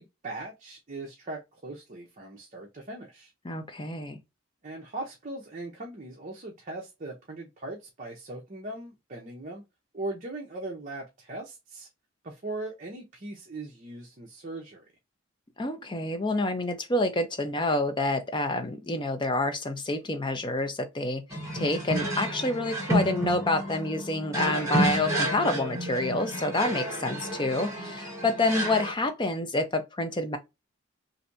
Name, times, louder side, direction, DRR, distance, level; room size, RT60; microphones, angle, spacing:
voice 1, 0.0-3.3 4.6-9.6 9.9-11.9 12.2-14.9 27.0-27.4, right 2 dB, 40° right, 0.6 m, -39 dB
voice 2, 3.4-4.2 15.6-21.2 21.5-30.4, left 2 dB, 25° left, 0.5 m, -28 dB
sound 1, 21.3-28.9, right 1 dB, 15° right, 1.3 m, -30 dB
3.2 x 2.6 x 2.6 m
head